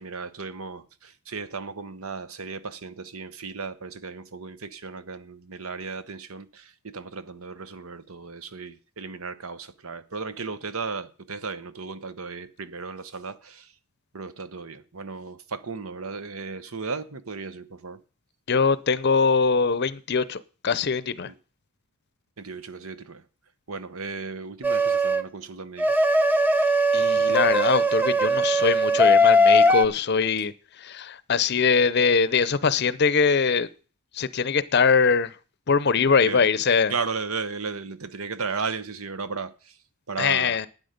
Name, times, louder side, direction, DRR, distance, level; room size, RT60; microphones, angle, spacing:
voice 1, 0.0-13.7 14.1-18.0 21.2-21.3 22.4-23.2 23.7-25.9 36.2-36.4 36.9-39.7 40.1-40.6, right 4 dB, 75° right, 1.0 m, -35 dB
voice 2, 18.5-21.3 26.9-30.5 30.8-33.7 34.1-35.3 35.7-36.9 40.2-40.7, left 5 dB, 50° left, 0.6 m, -22 dB
sound 1, 24.6-25.2 25.8-29.9, equal, 10° right, 0.6 m, -20 dB
12.0 x 9.4 x 5.2 m
head